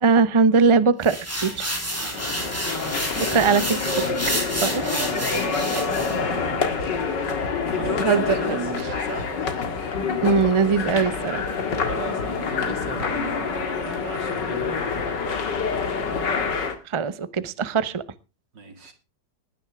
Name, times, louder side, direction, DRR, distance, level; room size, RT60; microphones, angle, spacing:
voice 1, 0.0-1.2 1.4-1.7 3.2-4.0 4.6-4.9 8.0-8.2 10.2-11.4 16.9-18.0, right 5 dB, 25° right, 14 dB, 0.6 m, -20 dB
sound 1, 1.0-6.2, equal, 10° right, 4.2 m, -29 dB
voice 2, 1.9-2.5 2.8-3.4 4.8-6.6 7.2-9.5 11.8-16.0 18.5-18.9, right 4 dB, 90° right, 7 dB, 3.1 m, -37 dB
sound 2, 2.1-16.8, left 5 dB, 80° left, 2.5 m, -27 dB
19.5 x 10.0 x 3.5 m, 0.30 s
omnidirectional pair, 1.9 m